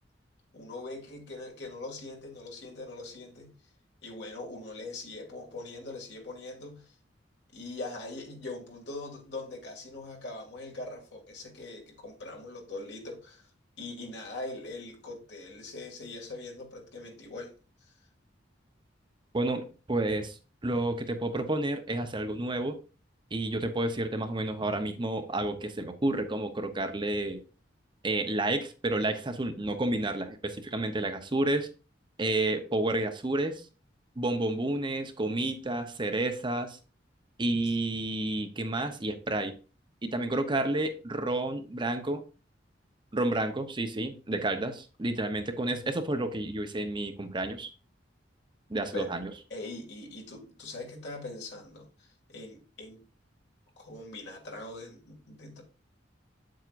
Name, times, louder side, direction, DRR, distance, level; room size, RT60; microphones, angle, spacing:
voice 1, 0.5-3.5 4.0-6.9 7.5-13.5 13.8-17.5 37.6-37.8 48.9-49.1 49.5-53.0 53.8-55.6, left 2 dB, 65° left, 2.4 m, -42 dB
voice 2, 19.3-20.4 20.6-22.8 23.3-27.4 28.0-31.7 32.2-33.6 34.2-36.8 37.4-39.5 40.0-42.2 43.1-47.7 48.7-49.3, right 2 dB, 25° right, 0.8 m, -30 dB
8.1 x 7.7 x 2.5 m
head